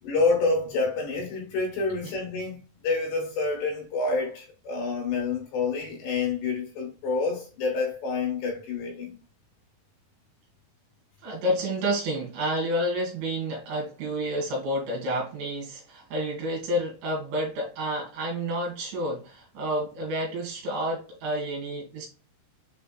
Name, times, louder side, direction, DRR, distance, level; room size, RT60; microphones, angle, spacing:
voice 1, 0.0-2.6 2.8-9.2, left 3 dB, 70° left, 3.0 m, -28 dB
voice 2, 11.2-22.1, equal, 65° right, 3.6 m, -29 dB
7.1 x 3.4 x 2.2 m
omnidirectional pair, 5.7 m